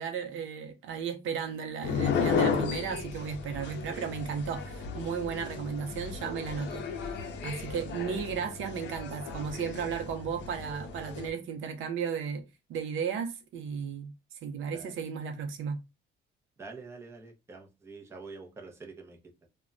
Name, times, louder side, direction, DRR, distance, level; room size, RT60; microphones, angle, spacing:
voice 1, 0.0-6.8 7.4-12.4 12.7-14.1 14.4-15.8, right 6 dB, 70° right, 0.6 m, -34 dB
sound 1, 1.8-11.3, left 6 dB, 55° left, 0.6 m, -34 dB
voice 2, 16.6-19.3, right 3 dB, 10° right, 0.5 m, -46 dB
2.2 x 2.1 x 3.6 m
cardioid pair, 140°, 21 cm